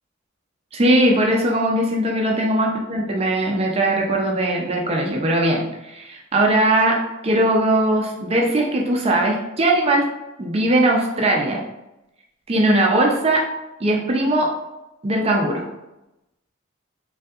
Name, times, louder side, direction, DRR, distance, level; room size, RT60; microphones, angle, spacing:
voice 1, 0.7-7.0 7.2-10.1 10.4-11.6 12.5-13.4 13.8-14.5 15.0-15.7, right 1 dB, 30° right, 0 dB, 0.4 m, -19 dB
3.3 x 2.6 x 2.3 m, 0.92 s
head